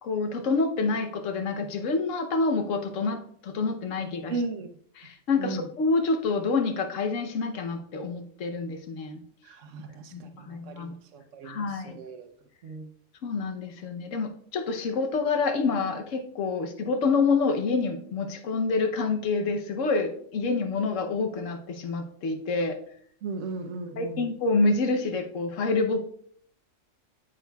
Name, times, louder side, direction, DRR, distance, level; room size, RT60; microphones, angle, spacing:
voice 1, 0.0-4.3 5.0-9.2 10.1-10.9 11.4-12.0 13.2-22.8 24.0-26.1, left 4 dB, 80° left, 5 dB, 1.2 m, -27 dB
voice 2, 4.3-4.7 5.4-5.6 9.4-12.3 12.6-12.9 23.2-24.3, right 3 dB, 80° right, 7 dB, 1.1 m, -36 dB
8.6 x 7.5 x 2.3 m, 0.64 s
omnidirectional pair, 1.3 m